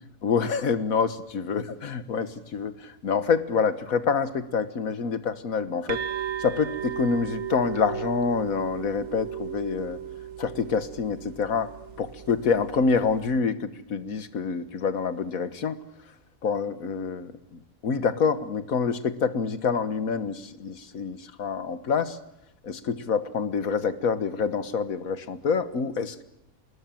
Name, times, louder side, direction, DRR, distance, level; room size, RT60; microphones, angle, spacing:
voice 1, 0.2-6.0 6.4-10.0 10.4-15.8 16.4-22.2 22.6-26.2, left 5 dB, 75° left, 12 dB, 1.8 m, -27 dB
sound 1, 5.9-13.4, right 10 dB, 55° right, 1.4 m, -36 dB
27.0 x 20.5 x 7.6 m, 0.80 s
omnidirectional pair, 1.5 m